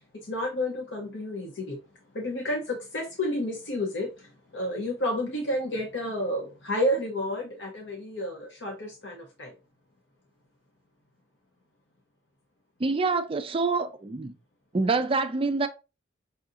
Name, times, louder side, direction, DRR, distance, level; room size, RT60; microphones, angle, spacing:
voice 1, 0.1-1.8 2.1-9.5, left 1 dB, 65° left, 0.8 m, -31 dB
voice 2, 12.8-14.3 14.7-15.7, right 3 dB, 25° right, 0.4 m, -26 dB
5.5 x 2.7 x 2.5 m
head